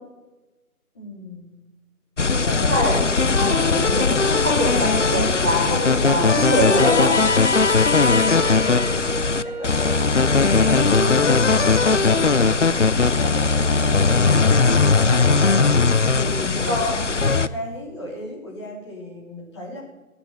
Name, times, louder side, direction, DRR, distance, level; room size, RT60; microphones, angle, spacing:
voice 1, 0.9-1.5 2.3-3.1 8.0-19.8, left 1 dB, 20° left, -4 dB, 3.3 m, -35 dB
sound 1, 2.2-17.5, left 4 dB, 55° left, 0.7 m, -19 dB
voice 2, 2.6-2.9 3.4-7.1 16.7-16.9, equal, 10° right, -10 dB, 1.2 m, -23 dB
Wind instrument woodwind instrument, 7.5-12.5, right 2 dB, 80° right, 2.5 m, -35 dB
19.0 x 8.9 x 7.7 m, 1.1 s
figure-of-eight pair, 165°, 45 cm